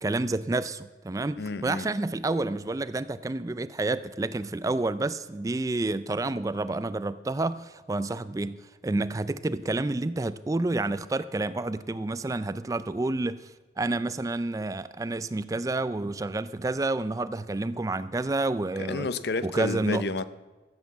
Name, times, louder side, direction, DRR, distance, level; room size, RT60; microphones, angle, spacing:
voice 1, 0.0-13.5 13.8-19.1 19.4-20.0, right 2 dB, 20° right, 14 dB, 0.3 m, -29 dB
voice 2, 1.4-1.9 18.9-20.2, left 3 dB, 60° left, 14 dB, 0.6 m, -30 dB
14.0 x 8.1 x 7.2 m, 1.3 s
head